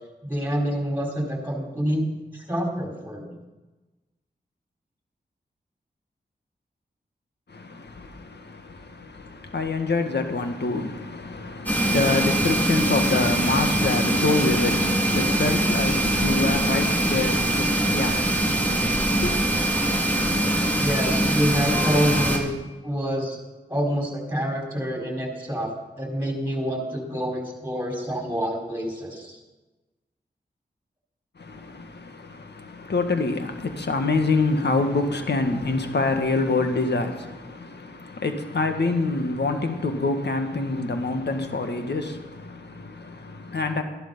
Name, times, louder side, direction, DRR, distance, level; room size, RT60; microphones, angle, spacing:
voice 1, 0.2-2.1 2.3-3.3 20.8-22.5 22.8-23.4 23.7-25.7 26.0-29.4, equal, 10° right, 4.7 m, -27 dB
voice 2, 7.5-19.5 31.4-43.8, left 3 dB, 65° left, 1.8 m, -26 dB
sound 1, 11.7-22.4, right 1 dB, 10° left, 3.6 m, -22 dB
13.5 x 11.5 x 5.6 m
cardioid pair, 40°, 19 cm